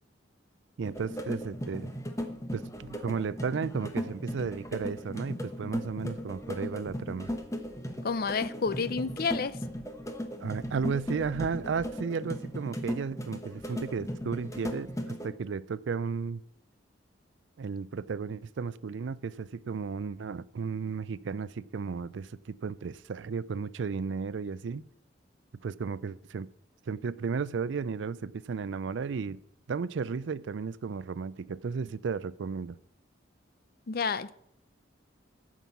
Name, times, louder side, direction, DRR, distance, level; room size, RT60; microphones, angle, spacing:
sound 1, 0.8-15.3, equal, 15° left, 1.0 m, -37 dB
voice 1, 0.8-1.9 2.5-7.3 10.4-16.4 17.6-24.8 25.6-26.5 26.9-29.4 29.7-32.8, right 5 dB, 75° right, 0.4 m, -34 dB
voice 2, 8.0-9.6 33.9-34.3, left 5 dB, 50° left, 0.6 m, -30 dB
9.2 x 6.1 x 8.3 m
head